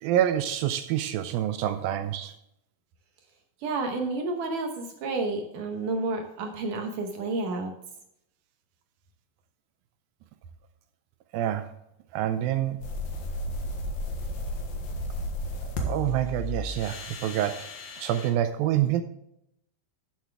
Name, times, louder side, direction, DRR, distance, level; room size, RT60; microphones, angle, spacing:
voice 1, 0.0-2.3 11.3-11.7 12.1-12.8 15.8-17.7 18.0-19.0, right 11 dB, 80° right, 10 dB, 2.1 m, -27 dB
voice 2, 3.6-7.7, right 3 dB, 65° right, 3 dB, 2.3 m, -30 dB
sound 1, 12.8-18.3, left 1 dB, 65° left, 3.0 m, -34 dB
13.0 x 7.4 x 3.4 m, 0.79 s
omnidirectional pair, 4.7 m